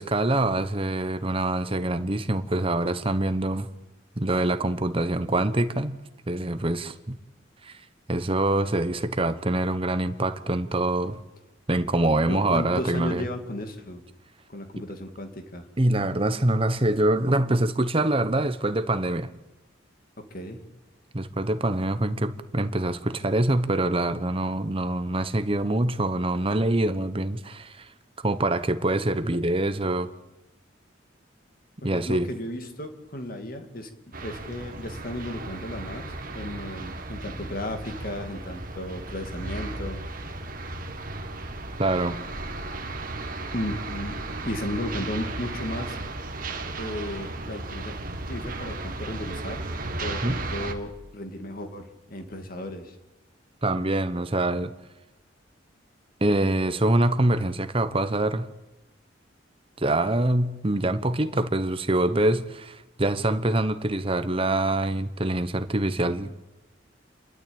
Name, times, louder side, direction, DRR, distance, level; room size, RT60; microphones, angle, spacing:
voice 1, 0.0-3.7 4.2-6.0 6.3-7.2 7.6-7.7 8.1-11.2 11.7-13.2 15.8-19.3 21.1-27.9 28.2-30.1 31.8-32.3 41.8-42.2 50.2-50.4 53.6-54.7 56.2-58.5 59.8-66.3, right 1 dB, 30° right, 1.0 m, -25 dB
voice 2, 12.3-14.0 14.5-15.6 20.2-20.6 31.8-40.0 43.5-44.2 44.4-46.0 46.8-48.0 48.3-49.7 50.0-53.0, left 1 dB, 50° left, 2.4 m, -34 dB
sound 1, 34.1-50.7, right 2 dB, 50° right, 1.7 m, -35 dB
28.5 x 12.0 x 8.8 m
head